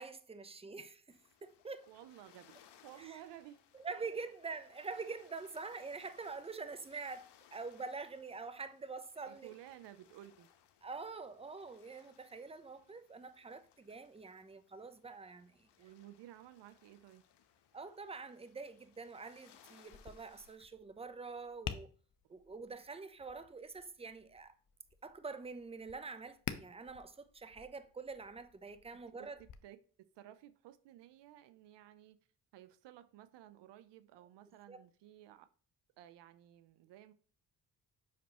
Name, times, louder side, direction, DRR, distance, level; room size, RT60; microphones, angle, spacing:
voice 1, 0.0-1.9 3.0-3.2 3.8-9.5 10.8-15.7 17.7-21.9 22.3-24.5 25.0-29.4 34.7-34.8, right 4 dB, 15° right, 0.8 m, -46 dB
sound 1, 1.1-20.6, left 9 dB, 65° left, 1.1 m, -67 dB
voice 2, 1.9-3.6 9.3-10.5 15.8-17.2 29.2-29.3 29.6-29.8 30.1-32.2 32.5-35.5 36.0-37.1, right 13 dB, 70° right, 0.7 m, -55 dB
Tap, 19.9-29.5, left 8 dB, 45° left, 0.9 m, -50 dB
7.2 x 5.9 x 3.0 m
hypercardioid pair, 50°, 44 cm